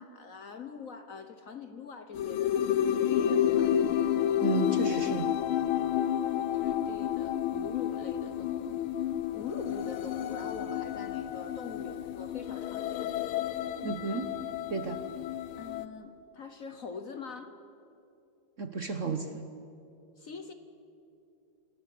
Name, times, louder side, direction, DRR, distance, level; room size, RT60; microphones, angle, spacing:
voice 1, 0.0-3.8 6.5-8.9 9.3-13.1 15.6-17.6 20.2-20.5, left 4 dB, 50° left, 8 dB, 1.2 m, -43 dB
sound 1, 2.1-15.9, left 10 dB, 85° left, 1.6 m, -30 dB
voice 2, 4.4-5.4 13.8-14.3 14.7-15.0 18.6-19.4, right 4 dB, 50° right, 7 dB, 1.1 m, -33 dB
28.0 x 20.0 x 6.7 m, 2.7 s
omnidirectional pair, 2.2 m